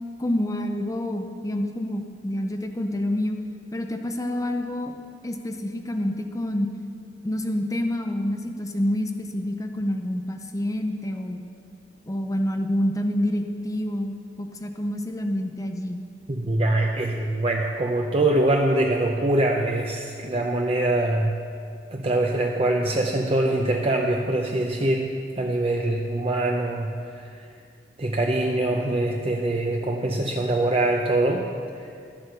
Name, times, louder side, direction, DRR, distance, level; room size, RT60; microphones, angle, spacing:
voice 1, 0.2-3.4 3.7-4.9 5.2-6.7 7.2-11.4 12.1-16.0, left 1 dB, 20° left, 5 dB, 0.6 m, -27 dB
voice 2, 16.3-21.3 21.9-27.3 28.0-31.5 31.8-31.9, right 1 dB, 35° right, 1 dB, 0.7 m, -23 dB
12.0 x 8.1 x 6.8 m, 2.4 s
head